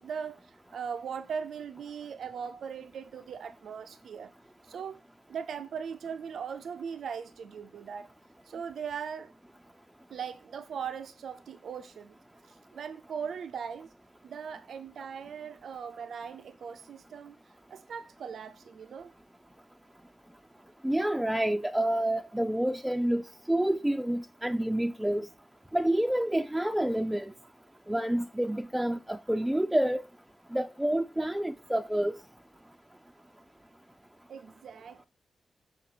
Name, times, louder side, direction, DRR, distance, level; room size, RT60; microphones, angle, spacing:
voice 1, 0.0-4.3 4.6-5.0 5.3-8.1 8.4-9.3 10.1-12.2 12.4-13.9 14.2-17.4 17.7-19.1 34.3-35.0, right 7 dB, 80° right, 0.5 m, -39 dB
voice 2, 20.8-23.2 23.5-25.3 25.7-27.3 27.9-30.0 30.5-32.2, right 1 dB, 5° right, 0.4 m, -28 dB
7.0 x 5.4 x 3.9 m
wide cardioid pair, 120°, 0 cm